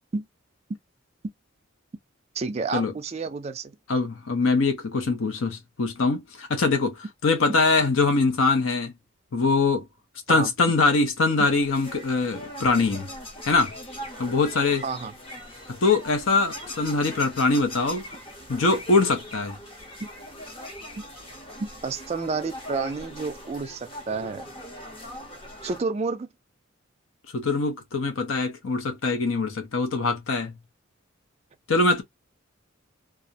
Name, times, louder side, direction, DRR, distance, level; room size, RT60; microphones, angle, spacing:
voice 1, 2.4-3.8 10.3-10.5 14.8-15.1 21.6-24.5 25.6-26.3, right 4 dB, 30° right, 0.3 m, -30 dB
voice 2, 3.9-8.9 9.3-9.9 10.3-13.1 13.4-13.7 14.2-14.8 15.7-18.0 18.5-19.6 27.3-30.5 31.7-32.0, left 3 dB, 80° left, 0.6 m, -23 dB
sound 1, 11.4-25.8, left 1 dB, 25° left, 0.7 m, -41 dB
2.4 x 2.0 x 2.7 m
head